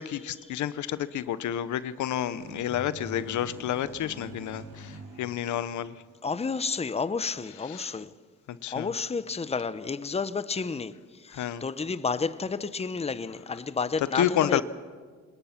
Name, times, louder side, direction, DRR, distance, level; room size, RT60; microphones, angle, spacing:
voice 1, 0.0-6.0 7.7-7.9 8.5-8.9 11.3-11.6 14.1-14.6, left 11 dB, 75° left, 0.9 m, -30 dB
sound 1, 2.4-6.1, right 2 dB, 75° right, 4.3 m, -44 dB
voice 2, 6.2-8.1 8.7-14.6, left 5 dB, 20° left, 0.9 m, -31 dB
26.5 x 20.5 x 5.9 m
cardioid pair, 90°, 30 cm